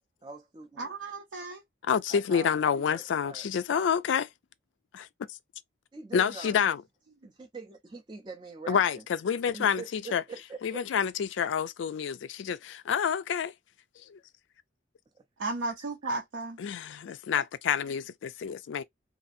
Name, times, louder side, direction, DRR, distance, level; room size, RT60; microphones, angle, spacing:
voice 1, 0.2-0.9 2.1-3.5 3.7-3.8 5.9-6.6 7.2-9.0 9.5-10.8, right 4 dB, 25° right, 0.4 m, -44 dB
voice 2, 0.8-1.6 15.4-16.6, right 2 dB, 75° right, 0.6 m, -34 dB
voice 3, 1.9-4.3 4.9-5.1 6.1-6.8 8.7-10.2 10.6-13.5 14.1-14.2 16.6-18.8, left 7 dB, 75° left, 0.3 m, -28 dB
2.6 x 2.4 x 2.5 m
head